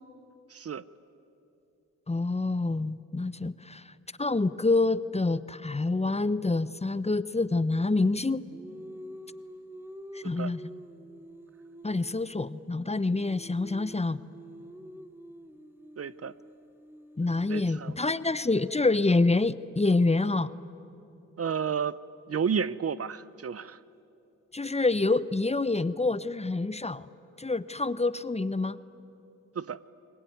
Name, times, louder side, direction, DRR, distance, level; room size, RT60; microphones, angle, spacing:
voice 1, 0.5-0.8 10.2-10.5 16.0-16.3 17.5-17.9 21.4-22.0 22.3-23.8 29.5-29.8, right 7 dB, 45° right, 17 dB, 0.8 m, -31 dB
voice 2, 2.1-3.9 4.2-8.5 10.1-10.6 11.8-14.2 17.2-20.5 24.5-27.1 27.4-28.8, left 3 dB, 20° left, 16 dB, 0.9 m, -27 dB
Singing, 7.9-12.2 12.5-18.5, equal, 5° right, 2.4 m, -47 dB
29.5 x 20.5 x 9.4 m, 2.8 s
supercardioid pair, 45°, 34 cm